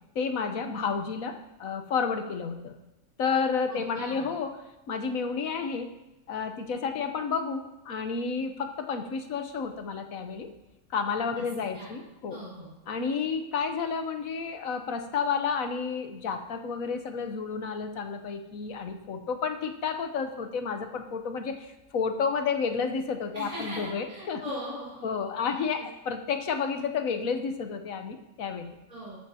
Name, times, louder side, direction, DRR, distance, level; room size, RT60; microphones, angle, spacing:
voice 1, 0.1-2.7 3.2-4.6 4.9-5.9 6.3-10.5 10.9-12.4 12.9-24.4 25.0-28.8, left 5 dB, 70° left, 6 dB, 1.4 m, -31 dB
voice 2, 3.7-4.3 11.4-11.5 11.7-12.0 12.3-12.7 23.3-25.0 25.4-25.9 28.9-29.2, equal, 25° right, -8 dB, 5.3 m, -40 dB
13.0 x 12.5 x 2.9 m, 0.93 s
omnidirectional pair, 1.5 m